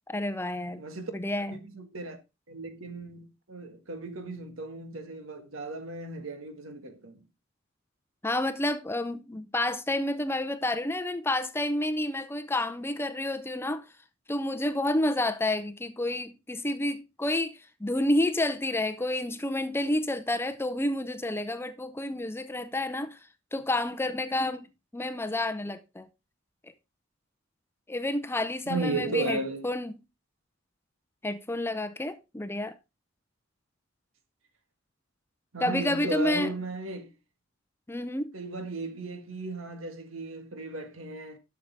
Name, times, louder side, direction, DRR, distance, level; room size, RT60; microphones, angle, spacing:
voice 1, 0.1-0.8 1.1-1.5 8.2-13.9 14.3-23.2 23.5-24.7 24.9-26.1 26.6-26.7 27.9-30.0 31.2-32.8 35.6-36.5 37.9-38.3, left 1 dB, 10° left, 0.6 m, -29 dB
voice 2, 0.8-1.1 1.5-2.2 2.5-7.2 28.7-29.7 35.5-37.1 38.3-41.4, right 3 dB, 85° right, 1.7 m, -35 dB
11.5 x 6.7 x 3.4 m
head